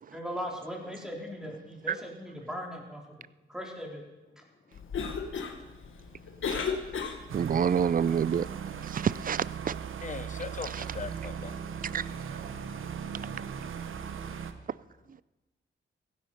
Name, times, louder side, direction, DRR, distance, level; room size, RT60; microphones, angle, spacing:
voice 1, 0.1-3.0 3.5-4.0, equal, 5° right, 3.5 m, -38 dB
Cough, 4.7-7.6, left 5 dB, 75° left, 1.6 m, -35 dB
voice 2, 7.3-8.5 8.8-9.7 10.6-10.8 11.9-12.4, right 7 dB, 40° right, 0.4 m, -28 dB
sound 1, 7.3-14.5, right 7 dB, 75° right, 1.0 m, -38 dB
voice 3, 10.0-11.6, left 5 dB, 40° left, 0.9 m, -39 dB
15.5 x 10.5 x 5.7 m
cardioid pair, 70°, 21 cm